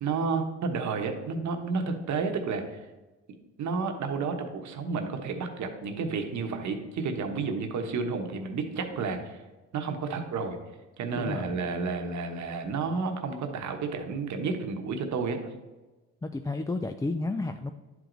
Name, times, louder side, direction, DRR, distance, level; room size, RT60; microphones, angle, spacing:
voice 1, 0.0-2.8 3.6-9.4 9.7-10.6 11.0-15.4, right 4 dB, 70° right, 5 dB, 1.2 m, -31 dB
voice 2, 11.1-11.6 16.2-17.7, left 2 dB, 10° left, 7 dB, 0.3 m, -31 dB
10.5 x 4.8 x 3.9 m, 1.2 s
cardioid pair, 90°, 30 cm